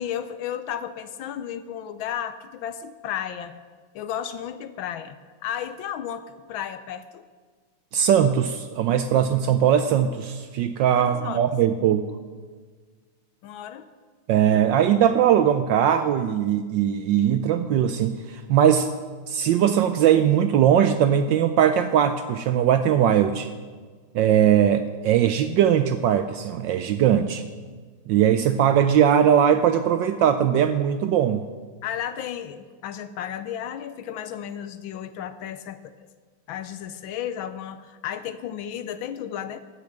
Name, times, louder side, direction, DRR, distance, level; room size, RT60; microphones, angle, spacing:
voice 1, 0.0-3.5 3.9-5.2 5.4-7.2 10.9-11.5 13.4-13.9 14.5-14.6 27.7-27.8 31.8-36.1 36.5-39.6, left 9 dB, 75° left, 12 dB, 1.3 m, -33 dB
voice 2, 7.9-12.1 14.3-18.9 19.3-23.5 24.1-27.4 28.1-31.5, right 9 dB, 75° right, 10 dB, 1.1 m, -20 dB
13.0 x 6.8 x 7.9 m, 1.5 s
omnidirectional pair, 2.4 m